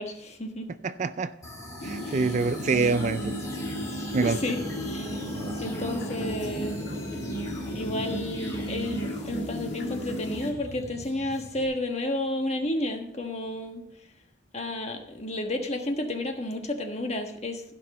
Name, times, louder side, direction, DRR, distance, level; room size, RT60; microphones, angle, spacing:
voice 1, 0.0-0.7 2.0-2.3 4.2-5.1 5.6-6.8 7.7-13.8 14.5-17.6, left 1 dB, 35° left, 1.4 m, -31 dB
voice 2, 0.8-1.3 1.8-3.4 4.1-4.4 5.4-5.6, right 4 dB, 40° right, 0.4 m, -26 dB
sound 1, 1.4-11.6, equal, 15° left, 2.3 m, -41 dB
sound 2, 1.8-10.5, equal, 65° left, 1.8 m, -34 dB
15.5 x 6.0 x 5.5 m
head